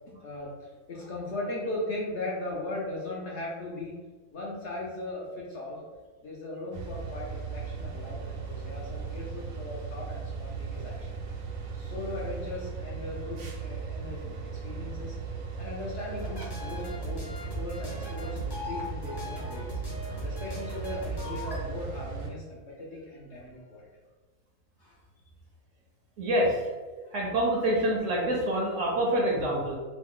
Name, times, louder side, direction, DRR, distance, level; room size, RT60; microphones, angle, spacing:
voice 1, 0.1-4.0 4.3-5.8 6.2-14.2 14.6-15.2 15.6-19.8 20.2-23.9 24.8-25.0 27.0-27.1, left 2 dB, 60° left, -5 dB, 0.8 m, -38 dB
sound 1, 6.7-22.3, right 5 dB, 90° right, 1.2 m, -37 dB
sound 2, 16.2-21.7, equal, 35° left, 0.4 m, -38 dB
voice 2, 26.2-26.6 27.1-29.7, right 1 dB, 65° right, -3 dB, 0.9 m, -26 dB
3.1 x 2.0 x 3.6 m, 1.4 s
omnidirectional pair, 1.6 m